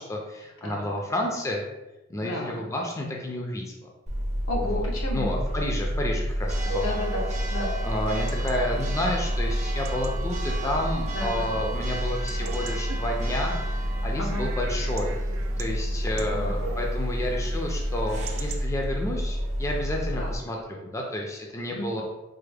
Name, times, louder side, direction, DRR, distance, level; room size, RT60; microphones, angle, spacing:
voice 1, 0.0-1.6 2.1-3.8 4.7-4.8 5.1-6.9 7.8-13.6 14.0-15.2 15.6-22.0, left 1 dB, 15° left, -1 dB, 0.4 m, -30 dB
voice 2, 2.2-2.6 4.5-5.4 6.8-7.7 11.1-11.6 14.2-14.5 16.1-16.7 20.2-20.4 21.7-22.0, left 1 dB, 85° left, -1 dB, 0.8 m, -33 dB
Church bell, 4.1-20.4, equal, 35° right, 0.5 m, -29 dB
Chatter / Bark / Livestock farm animals working animals, 6.5-18.7, right 3 dB, 85° right, 0.4 m, -42 dB
3.3 x 2.0 x 3.3 m, 1.0 s
head